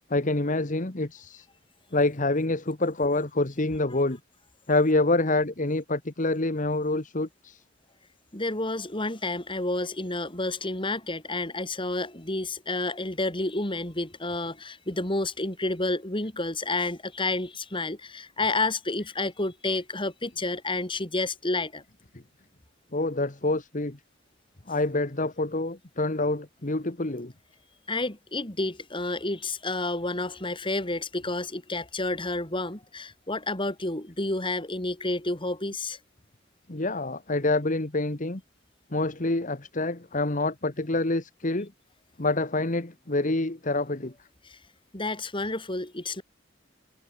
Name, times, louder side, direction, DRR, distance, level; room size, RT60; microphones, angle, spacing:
voice 1, 0.1-1.5 1.9-4.2 4.7-7.6 22.9-24.0 24.7-27.3 36.7-38.4 38.9-41.7 42.2-44.1, left 2 dB, 40° left, 1.5 m, -27 dB
voice 2, 8.3-21.8 27.9-36.0 44.4-44.6 44.9-46.2, left 2 dB, 25° left, 4.1 m, -30 dB
head